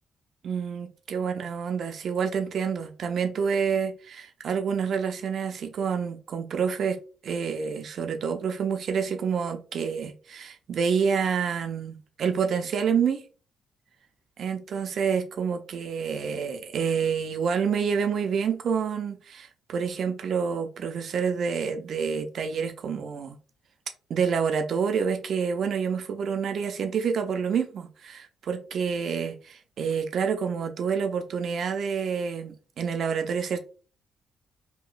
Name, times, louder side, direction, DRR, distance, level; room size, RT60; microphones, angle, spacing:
voice 1, 0.4-13.2 14.4-23.4 24.1-33.6, right 6 dB, 60° right, 0.4 m, -28 dB
2.8 x 2.6 x 2.4 m
cardioid pair, 90°, 0 cm